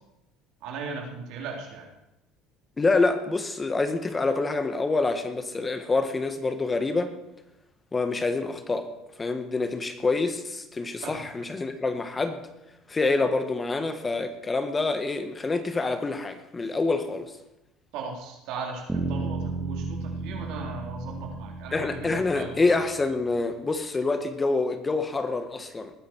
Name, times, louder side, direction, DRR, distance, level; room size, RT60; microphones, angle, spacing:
voice 1, 0.6-1.9 11.0-11.3 17.9-22.6, right 4 dB, 70° right, 0 dB, 4.0 m, -37 dB
voice 2, 2.8-7.1 7.9-8.9 9.2-12.4 12.9-17.3 21.7-25.9, left 3 dB, 20° left, 8 dB, 1.5 m, -26 dB
sound 1, 18.9-22.9, right 3 dB, 10° right, 2.1 m, -33 dB
20.0 x 9.8 x 4.7 m, 0.92 s
supercardioid pair, 95°, 0 cm